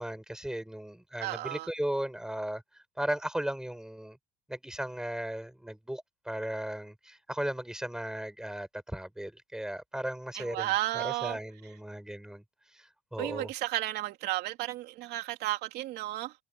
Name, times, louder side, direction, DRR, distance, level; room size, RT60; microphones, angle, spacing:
voice 1, 0.0-4.2 4.5-12.4 12.7-13.5, right 1 dB, 5° right, 8.0 m, -36 dB
voice 2, 1.2-1.7 10.3-11.4 13.2-16.3, right 16 dB, 60° right, 3.2 m, -33 dB
supercardioid pair, 115°, 19 cm